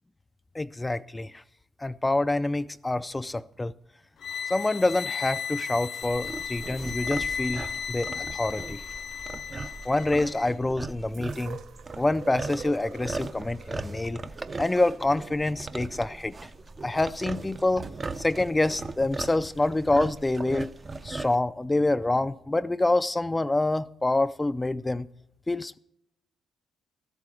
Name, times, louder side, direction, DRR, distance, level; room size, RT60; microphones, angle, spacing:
voice 1, 0.5-1.4 1.8-3.7 4.5-8.8 9.8-11.6 12.0-14.2 14.6-16.4 16.8-17.9 18.2-20.7 21.0-25.1 25.5-25.8, left 2 dB, 15° left, 0.4 m, -26 dB
sound 1, 4.2-10.5, left 7 dB, 65° left, 0.7 m, -35 dB
sound 2, 6.0-21.4, right 3 dB, 30° right, 0.6 m, -39 dB
sound 3, 11.1-17.2 18.0-18.1, right 6 dB, 70° right, 0.8 m, -45 dB
13.0 x 8.5 x 6.2 m
cardioid pair, 90°, 0 cm